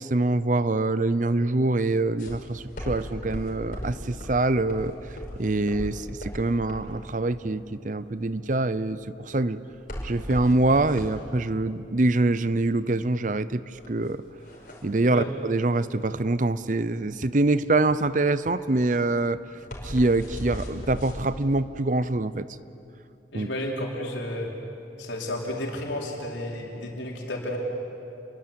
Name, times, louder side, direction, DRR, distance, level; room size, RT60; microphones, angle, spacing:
voice 1, 0.0-4.9 5.4-9.6 10.0-14.2 14.8-19.4 19.8-22.5 23.3-23.5, right 2 dB, 45° right, 15 dB, 0.7 m, -25 dB
sound 1, 2.2-21.2, equal, 45° left, 5.4 m, -38 dB
voice 2, 23.3-24.5 25.0-27.6, left 1 dB, 90° left, -1 dB, 4.9 m, -32 dB
29.5 x 22.0 x 8.8 m, 2.8 s
head